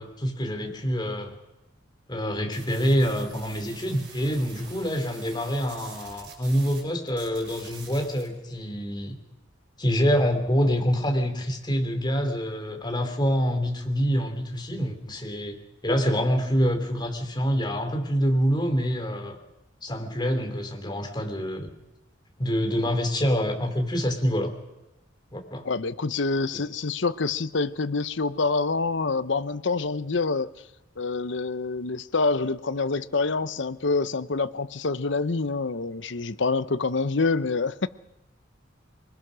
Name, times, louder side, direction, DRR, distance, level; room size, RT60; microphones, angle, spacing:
voice 1, 0.0-1.4 2.1-9.2 9.8-15.6 15.8-19.4 19.8-21.7 22.4-24.5 25.3-25.7 26.5-26.6, equal, 25° left, 3.0 m, -26 dB
sound 1, 2.5-6.8 7.1-8.3, right 5 dB, 60° right, 5.6 m, -46 dB
voice 2, 25.6-30.5 31.0-37.9, left 3 dB, 65° left, 0.8 m, -26 dB
24.0 x 21.0 x 6.3 m
head